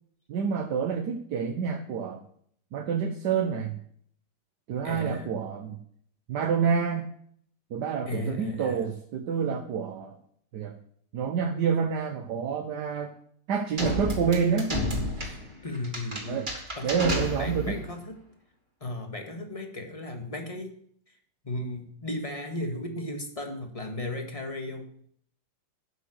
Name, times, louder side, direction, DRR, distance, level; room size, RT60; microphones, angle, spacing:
voice 1, 0.3-2.3 2.7-3.8 4.7-5.8 6.3-7.1 7.7-10.2 10.5-10.8 11.1-13.1 13.5-14.7 15.1-15.4 16.3-16.5 16.8-17.8, right 6 dB, 70° right, 5 dB, 1.5 m, -28 dB
voice 2, 4.8-5.3 8.1-8.8 15.6-16.5 16.8-18.2 18.8-20.8 21.4-24.9, left 1 dB, 20° left, 4 dB, 1.6 m, -35 dB
sound 1, 13.8-17.9, left 1 dB, 25° right, 2.6 m, -32 dB
12.5 x 9.0 x 6.4 m, 0.66 s
omnidirectional pair, 1.9 m